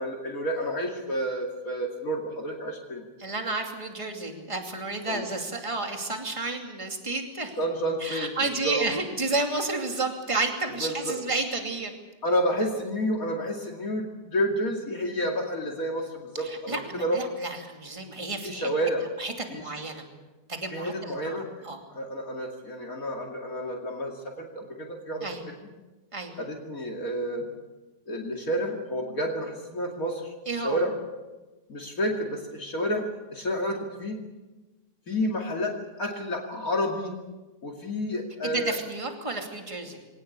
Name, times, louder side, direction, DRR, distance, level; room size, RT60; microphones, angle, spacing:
voice 1, 0.0-3.1 5.1-5.3 7.6-8.9 10.8-11.2 12.2-17.2 18.4-19.1 19.5-19.6 20.7-21.7 21.9-25.4 26.4-27.5 28.1-30.9 31.7-33.0 33.3-34.2 35.1-37.1 37.6-38.8, equal, 55° left, 1 dB, 2.9 m, -30 dB
voice 2, 3.2-7.5 8.0-12.0 16.4-18.7 19.2-20.0 20.5-21.4 21.6-21.8 25.2-25.4 26.1-26.3 30.5-30.8 38.4-40.0, right 3 dB, 20° right, 3 dB, 2.7 m, -31 dB
24.0 x 18.5 x 8.4 m, 1.2 s
omnidirectional pair, 1.8 m